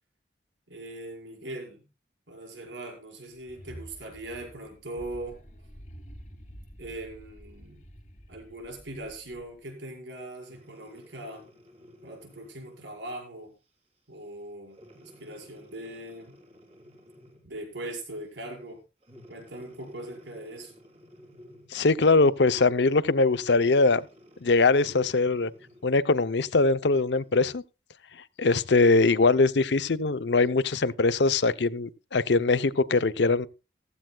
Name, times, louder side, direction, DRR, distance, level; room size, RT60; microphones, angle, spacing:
voice 1, 0.7-1.9 2.3-5.4 6.8-7.8 8.3-11.5 12.0-13.5 14.1-16.4 17.4-18.8 19.3-20.7, right 1 dB, 90° right, 5.4 m, -40 dB
sound 1, 3.3-9.7, equal, 40° left, 2.0 m, -48 dB
Breathing, 10.4-13.0 13.6-13.9 14.7-17.6 19.0-21.9 23.2-26.0 26.6-26.7, left 1 dB, 35° right, 3.4 m, -54 dB
voice 2, 21.7-24.0 24.4-25.5 25.8-27.6 28.4-33.5, left 3 dB, 75° left, 0.7 m, -22 dB
15.5 x 15.5 x 2.3 m
head